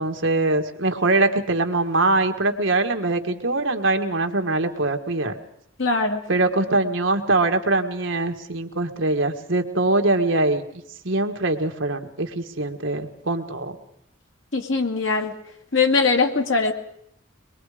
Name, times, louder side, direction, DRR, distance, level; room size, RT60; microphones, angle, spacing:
voice 1, 0.0-5.4 6.3-13.8, right 2 dB, 65° right, 5 dB, 1.7 m, -23 dB
voice 2, 5.8-6.2 14.5-15.3 15.7-16.7, left 4 dB, 65° left, 4 dB, 2.3 m, -21 dB
24.0 x 21.5 x 5.0 m, 0.72 s
head